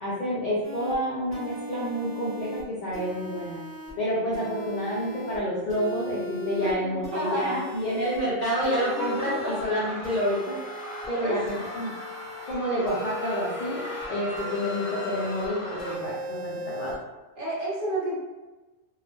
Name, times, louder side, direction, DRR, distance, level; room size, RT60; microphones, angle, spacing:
voice 1, 0.0-3.6 4.0-10.6 11.1-11.9 12.5-17.0, equal, 55° left, -6 dB, 0.5 m, -29 dB
sound 1, 0.6-0.9 1.3-2.6 2.9-3.9 4.3-5.4 5.7-6.7 7.0-8.2 8.6-9.6 10.0-11.1 11.5-12.5 12.9-14.0 14.4-15.5 15.8-16.9, left 1 dB, 10° right, 0.9 m, -38 dB
voice 2, 6.6-7.7 8.9-9.5 11.2-11.4 17.4-18.2, right 1 dB, 50° right, -8 dB, 1.0 m, -30 dB
sound 2, 8.5-16.0, left 1 dB, 40° left, 0.9 m, -38 dB
2.3 x 2.0 x 3.0 m, 1.2 s
omnidirectional pair, 1.2 m